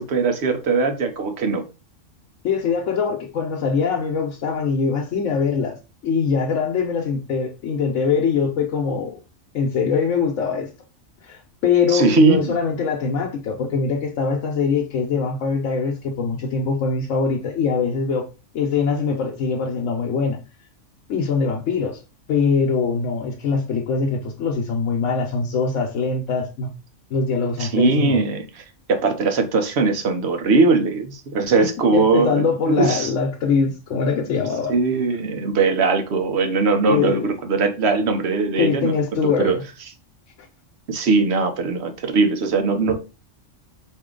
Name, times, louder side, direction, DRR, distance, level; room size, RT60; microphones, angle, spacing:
voice 1, 0.0-1.6 11.9-12.5 27.6-28.6 28.9-33.1 34.7-38.9 39.2-39.6 40.9-43.0, right 4 dB, 65° right, 1.0 m, -20 dB
voice 2, 2.4-5.8 6.0-9.2 9.5-10.7 11.2-18.3 18.5-20.4 21.1-22.0 22.3-26.7 27.1-28.2 31.9-34.8 36.9-37.3 38.6-39.6, left 5 dB, 90° left, 1.1 m, -22 dB
4.5 x 2.7 x 3.7 m
omnidirectional pair, 1.2 m